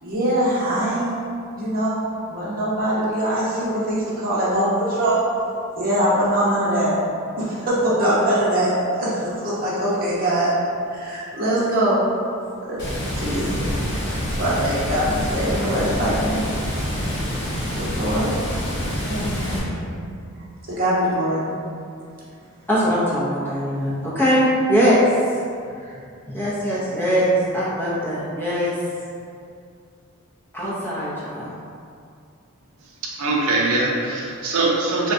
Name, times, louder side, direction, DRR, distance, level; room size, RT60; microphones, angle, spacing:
voice 1, 0.0-1.2 1.5-5.2 5.7-6.9 7.4-10.5 10.9-12.0 12.7-12.8 13.2-13.6 14.0-16.4 17.7-18.3 19.1-19.8 20.7-21.4, right 1 dB, 40° right, -8 dB, 0.8 m, -22 dB
Water, 12.8-19.6, equal, 55° left, 0.8 m, -26 dB
voice 2, 22.7-25.0 25.9-26.0 26.3-28.7 30.5-31.5, equal, 10° left, -9 dB, 0.5 m, -21 dB
voice 3, 33.2-35.1, right 2 dB, 75° right, -3 dB, 0.4 m, -22 dB
3.7 x 2.2 x 2.5 m, 2.4 s
head